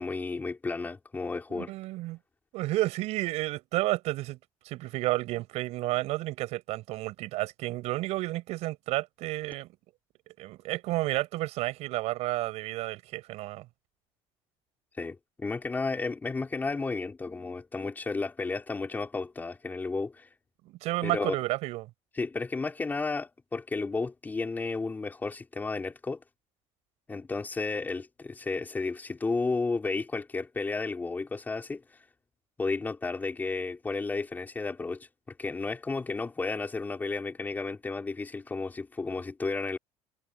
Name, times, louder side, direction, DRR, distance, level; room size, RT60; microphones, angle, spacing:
voice 1, 0.0-1.7 15.0-20.3 21.0-21.3 22.2-26.2 27.1-31.8 32.6-35.1 35.4-39.8, left 3 dB, 15° left, 5.0 m, -32 dB
voice 2, 1.5-2.2 2.5-4.4 4.6-9.7 10.3-13.7 20.6-21.9, right 18 dB, 60° right, 6.4 m, -31 dB
cardioid pair, 155°, 12 cm